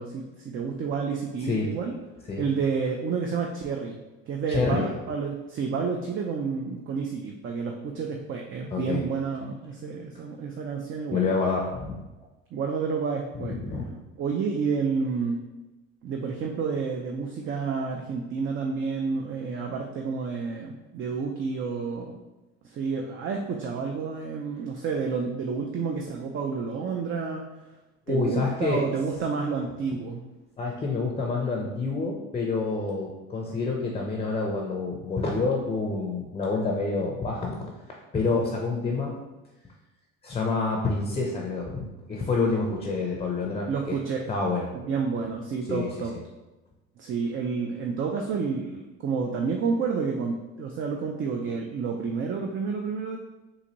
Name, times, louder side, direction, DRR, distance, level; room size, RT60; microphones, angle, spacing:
voice 1, 0.0-1.9 2.4-4.0 4.3-11.2 12.5-13.6 14.2-15.4 16.0-22.2 22.6-27.4 28.1-30.2 43.7-44.2 44.7-46.1 47.0-53.2, right 5 dB, 45° right, 1 dB, 0.5 m, -30 dB
voice 2, 1.4-1.7 2.3-2.5 4.5-4.9 8.7-9.1 11.1-12.0 13.4-13.8 28.1-28.8 30.6-37.7 38.1-39.1 40.2-44.0 44.3-44.7 45.7-45.9, left 3 dB, 20° left, 0 dB, 0.5 m, -28 dB
3.9 x 2.6 x 2.9 m, 1.1 s
supercardioid pair, 90°, 30 cm